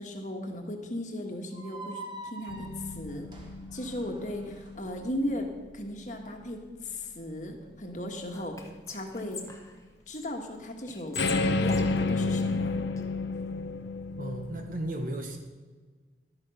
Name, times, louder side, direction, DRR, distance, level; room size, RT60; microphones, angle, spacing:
voice 1, 0.0-3.3 3.7-9.4 10.1-11.2 11.6-12.7, left 1 dB, 45° left, 3 dB, 1.4 m, -36 dB
sound 1, 1.5-4.7, right 2 dB, 25° right, 1.5 m, -45 dB
sound 2, 2.5-5.4 11.1-14.7, left 3 dB, 80° left, 0.7 m, -31 dB
Whispering, 8.3-10.3 10.9-13.0, left 4 dB, 15° left, 0.9 m, -42 dB
voice 2, 14.2-15.4, right 1 dB, 50° right, 4 dB, 1.1 m, -34 dB
12.0 x 8.7 x 5.7 m, 1.4 s
head